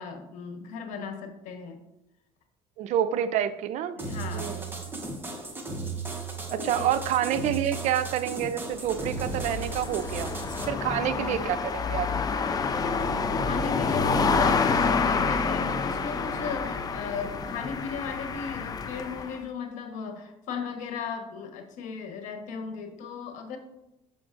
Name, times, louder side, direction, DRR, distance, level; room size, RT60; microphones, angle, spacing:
voice 1, 0.0-1.8 4.0-4.6 6.5-6.9 10.7-11.1 13.4-23.6, left 5 dB, 70° left, 5 dB, 1.1 m, -36 dB
voice 2, 2.8-4.0 4.4-4.7 6.5-10.3 10.7-12.1, right 10 dB, 65° right, 12 dB, 0.5 m, -28 dB
sound 1, 4.0-10.6, right 4 dB, 15° right, 1.2 m, -35 dB
sound 2, 8.7-19.4, left 4 dB, 30° left, 0.5 m, -28 dB
6.9 x 5.9 x 2.5 m, 0.90 s
cardioid pair, 110°, 13 cm